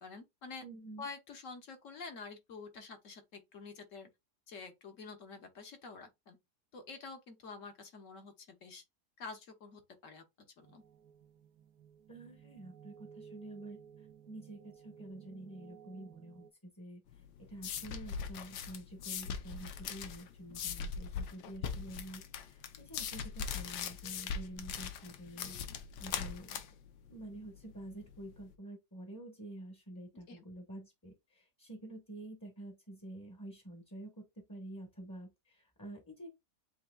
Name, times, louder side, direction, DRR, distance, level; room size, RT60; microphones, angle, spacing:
voice 1, 0.0-0.6 1.0-4.1 4.5-6.4 6.7-8.8 9.2-10.2 10.6-10.8 30.3-30.4, left 4 dB, 55° left, 1.2 m, -48 dB
voice 2, 0.6-1.1 12.1-25.6 26.0-26.6 27.1-36.3, right 1 dB, 15° left, 0.9 m, -49 dB
sound 1, 10.6-16.5, right 7 dB, 70° right, 1.0 m, -56 dB
sound 2, 17.1-28.4, left 7 dB, 75° left, 1.3 m, -41 dB
7.9 x 2.9 x 2.2 m
omnidirectional pair, 1.8 m